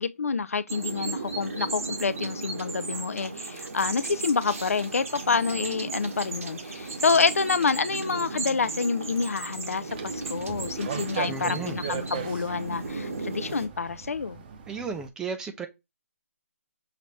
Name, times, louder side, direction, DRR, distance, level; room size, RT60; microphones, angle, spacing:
voice 1, 0.0-14.4, left 5 dB, 75° left, 0.5 m, -28 dB
sound 1, 0.7-13.7, right 3 dB, 75° right, 1.5 m, -35 dB
sound 2, 9.9-15.1, right 7 dB, 40° right, 0.8 m, -38 dB
voice 2, 11.3-11.8 14.7-15.7, right 5 dB, 10° right, 0.4 m, -34 dB
5.9 x 2.8 x 3.1 m
figure-of-eight pair, 150°, 8 cm